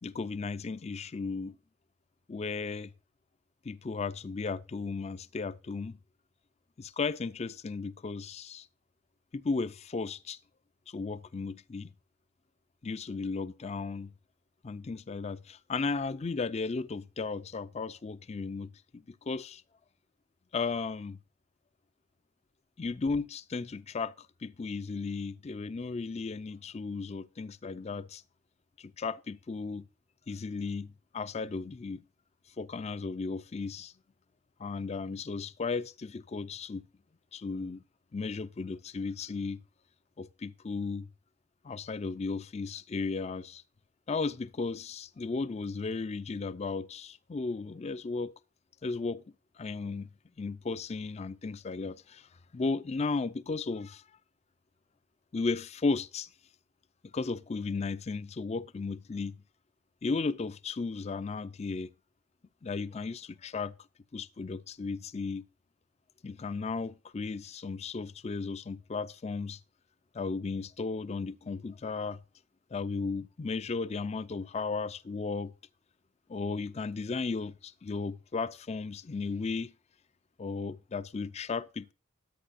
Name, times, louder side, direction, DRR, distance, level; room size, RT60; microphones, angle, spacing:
voice 1, 0.0-1.5 2.3-2.9 3.6-6.0 6.8-8.7 9.3-10.4 10.9-11.9 12.8-14.1 14.6-19.6 20.5-21.2 22.8-28.2 28.8-29.9 30.3-32.0 32.6-33.9 34.6-36.8 37.3-37.8 38.1-39.6 40.2-41.1 41.6-43.6 44.1-48.3 48.8-49.2 49.6-50.1 50.4-54.0 55.3-56.3 57.1-59.4 60.0-61.9 62.6-63.7 64.1-65.4 66.2-69.6 70.1-72.2 72.7-75.5 76.3-79.7 80.4-81.9, left 4 dB, 30° left, 0.4 m, -35 dB
14.0 x 8.8 x 2.5 m
head